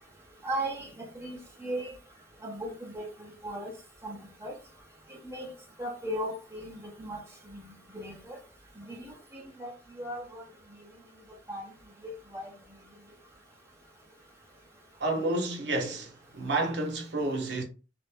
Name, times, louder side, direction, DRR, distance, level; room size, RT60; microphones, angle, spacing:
voice 1, 0.4-0.9 1.2-1.9 2.4-3.1 3.4-3.7 4.0-4.6 5.3-5.5 5.8-7.2 7.5-7.6 7.9-8.4 8.9-9.7 10.0-10.4 11.5-11.6 12.0-12.5, right 1 dB, 15° right, 0.7 m, -37 dB
voice 2, 15.0-17.6, right 2 dB, 75° right, 0.8 m, -30 dB
2.4 x 2.1 x 3.4 m
head